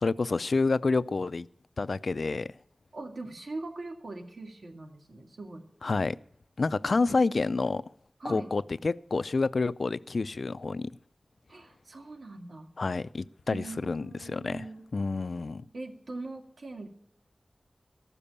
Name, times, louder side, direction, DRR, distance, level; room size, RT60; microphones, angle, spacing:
voice 1, 0.0-1.5 1.8-2.5 5.8-6.2 6.6-7.8 8.2-10.9 12.8-14.7 14.9-15.7, left 3 dB, 65° left, 0.4 m, -28 dB
voice 2, 2.9-5.6 7.0-7.2 8.2-8.5 11.5-12.7 13.5-14.8 15.7-16.9, right 2 dB, 85° right, 2.3 m, -41 dB
14.0 x 6.9 x 8.5 m
wide cardioid pair, 75°, 0 cm